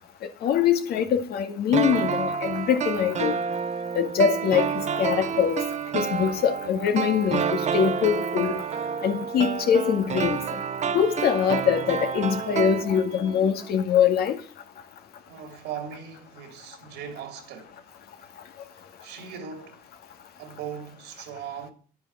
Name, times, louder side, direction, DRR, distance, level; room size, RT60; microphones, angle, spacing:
voice 1, 0.4-3.4 3.9-5.6 5.9-8.6 9.0-10.6 10.9-14.4, left 8 dB, 70° left, 2.2 m, -23 dB
sound 1, 1.7-13.4 13.6-13.7, right 7 dB, 45° right, 1.2 m, -29 dB
voice 2, 15.2-17.9 18.2-18.3 19.0-19.9 20.4-21.7, right 8 dB, 85° right, 3.2 m, -39 dB
11.0 x 9.5 x 8.0 m
cardioid pair, 110°, 17 cm